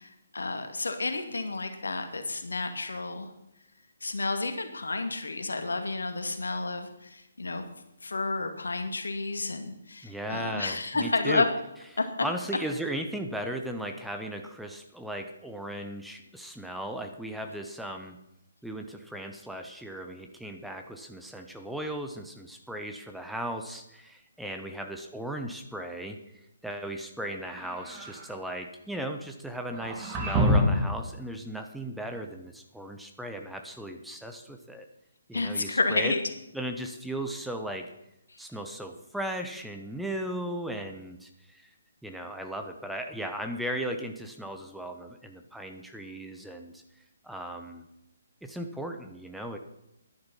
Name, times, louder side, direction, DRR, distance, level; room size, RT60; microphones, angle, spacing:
voice 1, 0.0-3.3 4.0-7.6 8.0-11.5 12.0-12.1 35.3-36.2, left 3 dB, 75° left, 6 dB, 2.0 m, -30 dB
voice 2, 10.0-11.5 12.2-18.2 18.6-26.2 26.6-34.8 35.3-36.1 36.5-37.9 38.4-41.7 42.0-46.8 47.2-47.8 48.4-49.6, right 1 dB, ahead, 4 dB, 0.9 m, -36 dB
sound 1, 27.4-28.3 29.7-31.0, equal, 20° right, 2.3 m, -26 dB
11.5 x 10.5 x 5.5 m, 0.87 s
figure-of-eight pair, 140°, 0 cm